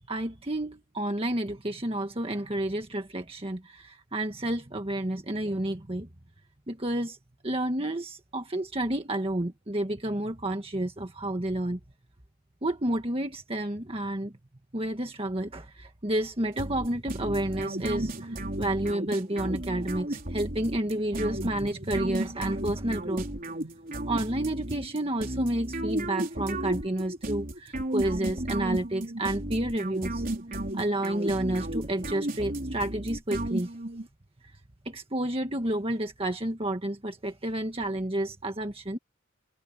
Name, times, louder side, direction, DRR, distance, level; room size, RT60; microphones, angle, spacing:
voice 1, 0.1-6.1 6.7-7.2 7.4-11.8 12.6-14.3 14.7-23.3 24.0-30.2 30.7-33.7 34.8-39.0, right 1 dB, 30° right, 1.6 m, -30 dB
sound 1, 16.6-34.1, right 1 dB, 45° right, 4.0 m, -34 dB
head